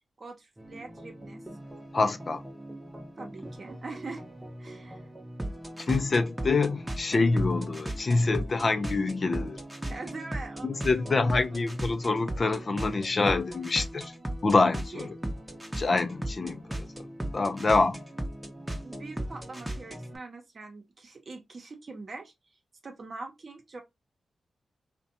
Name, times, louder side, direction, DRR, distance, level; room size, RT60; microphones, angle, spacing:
voice 1, 0.2-1.4 3.2-4.2 4.6-5.1 9.9-11.6 14.9-15.1 18.8-22.3 22.8-23.8, right 3 dB, 55° right, 0.7 m, -43 dB
sound 1, 0.6-20.2, right 1 dB, 15° right, 0.7 m, -38 dB
voice 2, 1.9-2.4 5.8-9.6 10.6-14.1 14.4-15.1 15.8-17.1 17.3-18.0, left 3 dB, 50° left, 0.4 m, -26 dB
2.5 x 2.2 x 2.6 m
supercardioid pair, 45°, 0 cm